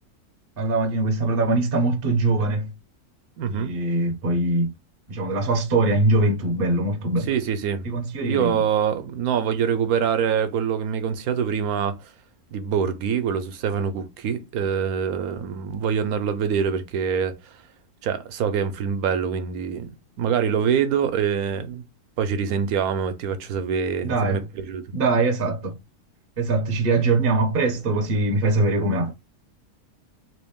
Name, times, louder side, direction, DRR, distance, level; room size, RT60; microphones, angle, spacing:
voice 1, 0.6-2.7 3.5-4.7 5.1-7.3 7.8-8.6 24.0-24.4 24.9-25.7 26.4-29.1, right 2 dB, 45° right, 0.8 m, -22 dB
voice 2, 3.4-3.8 7.3-7.9 8.2-12.1 12.5-17.5 18.0-21.8 22.2-24.9, right 7 dB, 75° right, 1.1 m, -25 dB
3.2 x 3.0 x 3.5 m
omnidirectional pair, 1.6 m